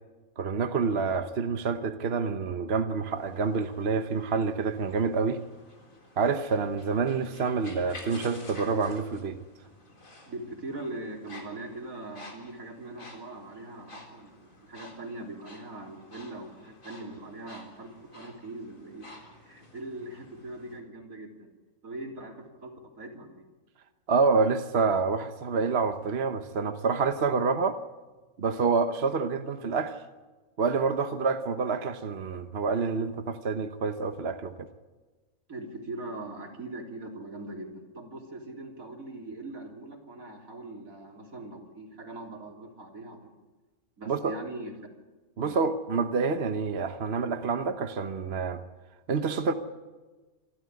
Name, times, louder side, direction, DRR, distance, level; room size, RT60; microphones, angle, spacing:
voice 1, 0.4-5.4 6.2-9.4 24.1-27.8 28.4-30.0 30.6-34.7 44.1-44.3 45.4-48.6 49.1-49.5, right 5 dB, 50° right, 8 dB, 1.2 m, -27 dB
sound 1, 3.1-20.8, left 1 dB, 70° left, 4.2 m, -51 dB
voice 2, 10.3-19.1 19.3-21.5 21.8-23.4 35.5-43.3 44.0-44.7 45.4-45.6, right 2 dB, 80° right, 2 dB, 3.9 m, -41 dB
26.5 x 13.5 x 9.7 m, 1.2 s
omnidirectional pair, 1.4 m